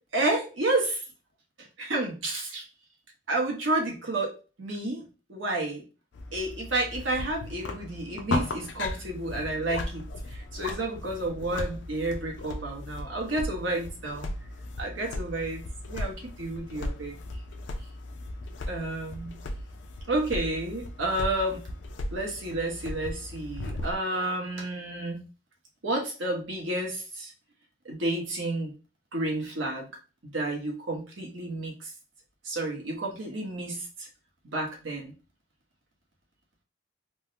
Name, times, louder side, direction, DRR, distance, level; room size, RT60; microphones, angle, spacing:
voice 1, 0.1-0.9 1.8-2.6 3.3-5.8 6.3-14.3 14.8-17.2 18.7-19.4 20.1-21.6 22.1-25.2 25.8-27.3 27.8-28.7 29.1-29.9 30.3-31.9 32.4-34.1 34.4-35.1, right 2 dB, 70° right, 0 dB, 1.0 m, -31 dB
sound 1, 6.1-24.0, left 1 dB, 60° left, 0.4 m, -37 dB
3.5 x 2.1 x 2.7 m, 0.32 s
head